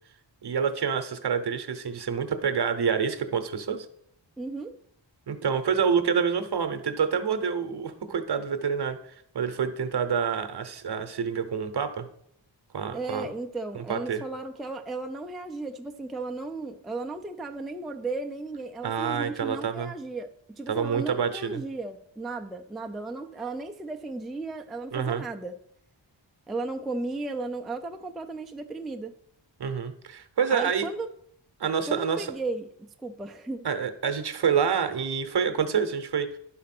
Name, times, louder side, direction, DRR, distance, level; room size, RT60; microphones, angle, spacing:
voice 1, 0.4-3.9 5.3-12.1 12.7-13.3 13.7-14.2 18.8-19.9 20.7-21.6 24.9-25.3 29.6-30.9 31.6-32.3 33.6-36.4, right 6 dB, 60° right, 0.8 m, -27 dB
voice 2, 4.4-4.8 12.9-25.5 26.5-29.1 30.5-31.1 31.9-32.7 33.0-33.7, right 3 dB, ahead, 0.3 m, -35 dB
10.5 x 4.2 x 5.9 m
wide cardioid pair, 135°, 46 cm